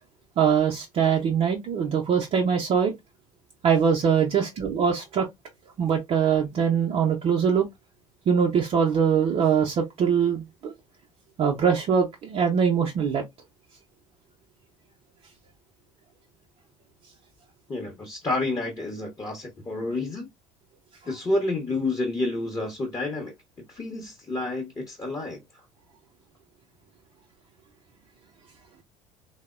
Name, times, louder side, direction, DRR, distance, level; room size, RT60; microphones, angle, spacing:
voice 1, 0.4-2.9 3.6-5.3 5.8-7.7 8.3-10.7 11.4-13.2, right 7 dB, 35° right, 0.6 m, -22 dB
voice 2, 17.7-20.3 21.0-23.3 23.7-25.4, left 2 dB, 20° left, 0.8 m, -29 dB
3.4 x 2.0 x 2.3 m
figure-of-eight pair, 60°, 18 cm